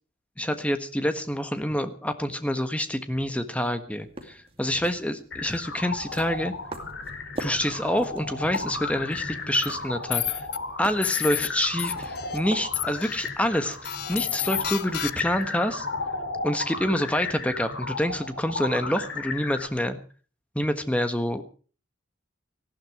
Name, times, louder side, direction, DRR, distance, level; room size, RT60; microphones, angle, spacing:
voice 1, 0.4-6.5 7.4-10.5 10.8-15.9 16.4-20.0 20.5-21.4, equal, 5° left, 9 dB, 1.4 m, -27 dB
sound 1, 4.0-13.2, right 1 dB, 30° right, 2.5 m, -44 dB
sound 2, 5.3-19.7, left 3 dB, 65° left, 3.5 m, -34 dB
sound 3, 9.5-9.7 10.1-10.6 11.0-11.5 11.8-12.4 12.7-13.3 13.8-15.4, left 13 dB, 50° left, 0.7 m, -31 dB
18.5 x 14.5 x 4.8 m, 0.40 s
head